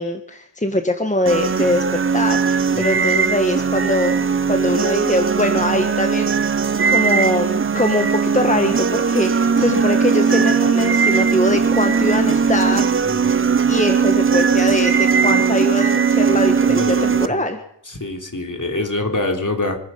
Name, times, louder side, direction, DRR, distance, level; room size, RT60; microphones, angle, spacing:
voice 1, 0.0-6.6 6.8-12.9 13.7-17.6, left 1 dB, 15° left, 5 dB, 1.6 m, -22 dB
sound 1, 1.3-17.3, right 5 dB, 30° right, 0.5 m, -18 dB
sound 2, 7.7-14.0 14.3-15.3, right 1 dB, 70° left, 8.0 m, -41 dB
voice 2, 13.0-13.5 16.6-17.4 17.9-19.8, left 2 dB, 45° left, 4 dB, 3.2 m, -25 dB
25.5 x 10.0 x 5.6 m, 0.74 s
wide cardioid pair, 55°, 44 cm